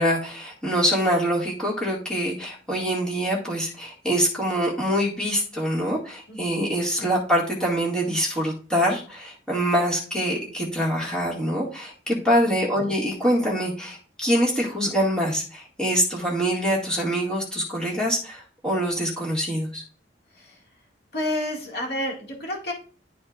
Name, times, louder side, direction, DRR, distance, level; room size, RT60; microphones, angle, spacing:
voice 1, 0.0-19.8, equal, 5° left, -5 dB, 2.0 m, -24 dB
voice 2, 6.3-6.7 12.1-12.2 20.3-20.6 21.1-22.7, left 1 dB, 60° left, -1 dB, 2.1 m, -30 dB
12.0 x 4.3 x 2.5 m, 0.39 s
head